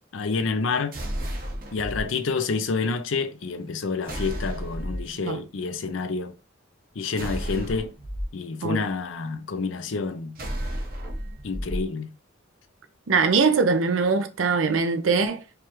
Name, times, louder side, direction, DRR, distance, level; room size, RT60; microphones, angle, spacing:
voice 1, 0.1-1.0 1.7-6.3 7.0-7.9 8.3-10.4 11.4-12.1, left 4 dB, 75° left, 0.5 m, -28 dB
sound 1, 0.9-2.0 4.0-5.1 7.2-8.2 10.4-11.8, equal, 45° right, 0.9 m, -32 dB
voice 2, 13.1-15.4, right 4 dB, 80° right, 0.5 m, -22 dB
4.7 x 2.4 x 3.0 m
head